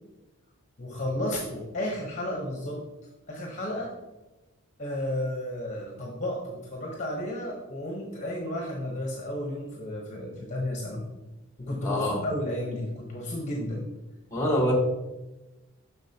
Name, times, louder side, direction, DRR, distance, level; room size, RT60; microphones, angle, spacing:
voice 1, 0.8-2.8 3.3-4.0 4.8-11.1 11.6-13.9, left 1 dB, 35° left, -1 dB, 1.0 m, -32 dB
voice 2, 11.8-12.2 14.3-14.7, equal, 15° left, 0 dB, 1.5 m, -25 dB
7.1 x 5.9 x 2.9 m, 1.0 s
head